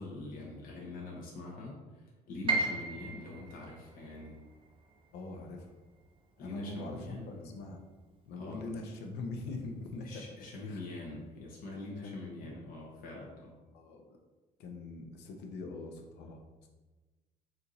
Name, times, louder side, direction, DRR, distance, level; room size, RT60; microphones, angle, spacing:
voice 1, 0.0-4.4 6.4-7.6 8.4-8.6 10.0-13.5, left 2 dB, 60° left, -3 dB, 0.9 m, -44 dB
Piano, 2.5-8.4 8.7-9.9 10.3-10.4 11.1-11.4, right 3 dB, 30° right, 0.6 m, -39 dB
voice 2, 5.1-5.7 6.4-7.8 8.3-10.3 10.6-10.9 12.0-12.6 13.7-14.0 14.6-16.7, left 3 dB, 85° left, 3 dB, 0.7 m, -43 dB
4.4 x 2.6 x 4.0 m, 1.2 s
cardioid pair, 110°, 17 cm